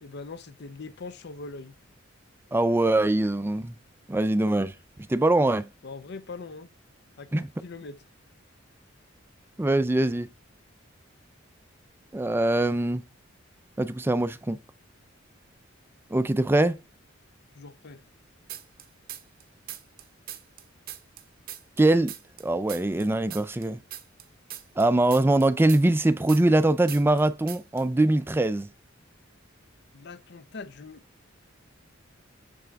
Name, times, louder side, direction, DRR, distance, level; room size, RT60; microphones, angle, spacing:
voice 1, 0.0-1.8 5.8-6.7 7.2-8.0 17.5-18.0 29.9-31.0, left 3 dB, 55° left, 0.6 m, -41 dB
voice 2, 2.5-3.8 4.1-4.7 5.1-5.7 7.3-7.5 9.6-10.3 12.1-13.0 13.8-14.6 16.1-16.8 21.8-22.1 22.4-23.8 24.8-28.7, right 2 dB, 10° right, 0.4 m, -22 dB
sound 1, 18.5-19.4 19.7-22.4 22.7-26.6 26.9-27.2 27.5-27.8, right 12 dB, 45° right, 0.6 m, -40 dB
6.9 x 5.6 x 3.5 m
head